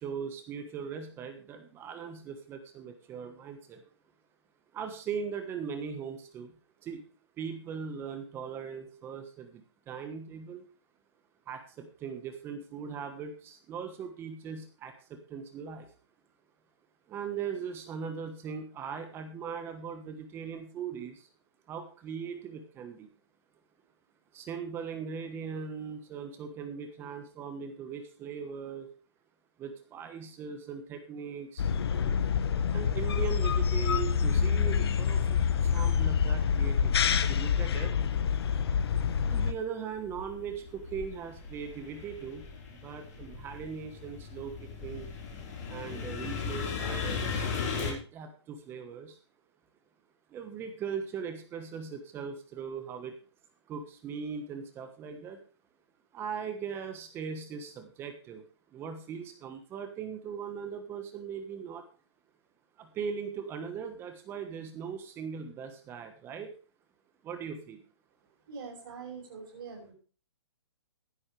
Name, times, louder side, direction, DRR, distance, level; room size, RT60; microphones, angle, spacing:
voice 1, 0.0-3.8 4.7-6.5 6.8-7.0 7.4-10.6 11.5-15.9 17.1-21.2 21.7-23.1 24.3-28.9 29.6-31.6 32.7-35.4 35.7-37.9 39.3-42.4 42.8-44.5 44.8-45.1 45.7-49.1 50.3-53.2 53.7-55.4 56.1-58.4 58.7-61.8 62.8-66.5 67.2-67.8, right 6 dB, 15° right, 7 dB, 1.2 m, -39 dB
sound 1, 31.6-39.5, left 7 dB, 55° left, 1.2 m, -27 dB
sound 2, 34.7-34.8 35.4-37.0 37.4-38.7 39.1-47.9, left 5 dB, 35° left, 4.1 m, -38 dB
voice 2, 68.5-69.9, right 5 dB, 45° right, -2 dB, 6.2 m, -43 dB
15.5 x 11.0 x 3.3 m, 0.37 s
hypercardioid pair, 155°, 15 cm